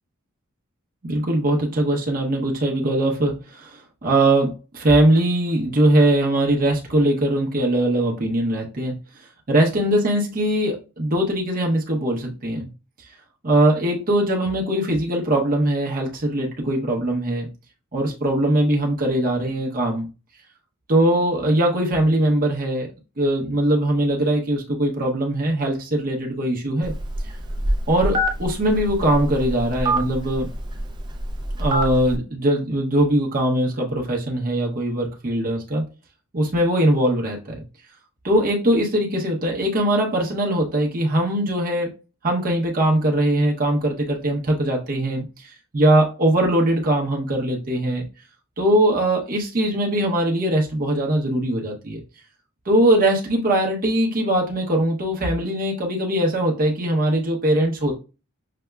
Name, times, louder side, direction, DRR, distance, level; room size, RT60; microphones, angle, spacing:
voice 1, 1.0-9.0 9.5-12.7 13.4-17.5 17.9-20.1 20.9-22.9 23.2-26.9 27.9-30.5 31.6-35.9 36.3-37.4 38.2-41.9 42.2-45.2 45.7-48.0 48.6-52.0 52.7-57.9, right 1 dB, 40° right, 0 dB, 0.7 m, -21 dB
Telephone, 26.8-32.2, equal, 20° right, 0.4 m, -26 dB
5.7 x 2.0 x 2.2 m, 0.31 s
head